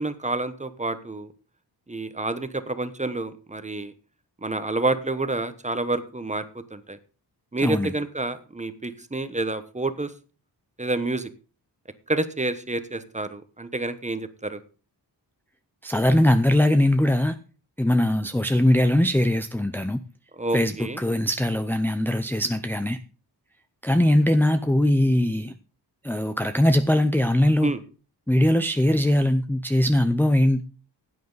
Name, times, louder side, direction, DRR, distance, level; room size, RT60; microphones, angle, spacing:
voice 1, 0.0-1.3 1.9-3.9 4.4-7.0 7.5-10.1 10.8-11.3 12.1-14.6 20.3-21.0 27.6-27.8, right 2 dB, 15° right, 11 dB, 1.1 m, -28 dB
voice 2, 15.8-17.3 17.8-20.0 20.5-20.7 21.0-23.0 23.8-25.5 26.0-27.7 28.3-30.6, left 1 dB, 5° left, 10 dB, 0.6 m, -21 dB
16.0 x 9.5 x 4.0 m, 0.36 s
wide cardioid pair, 130°, 41 cm